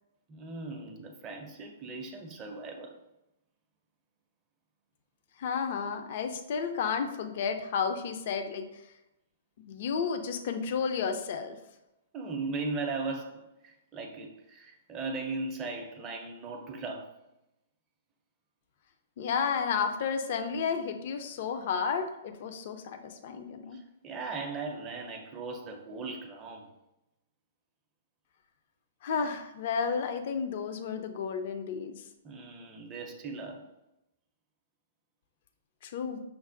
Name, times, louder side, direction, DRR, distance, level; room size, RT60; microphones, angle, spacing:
voice 1, 0.3-3.0 12.1-17.2 23.7-26.7 32.2-33.7 36.1-36.2, right 3 dB, 25° right, 2 dB, 0.5 m, -38 dB
voice 2, 5.4-8.8 9.7-11.6 19.2-23.8 29.0-32.0 35.8-36.2, left 6 dB, 50° left, 7 dB, 0.4 m, -32 dB
5.7 x 2.0 x 2.5 m, 0.89 s
figure-of-eight pair, 115°, 0 cm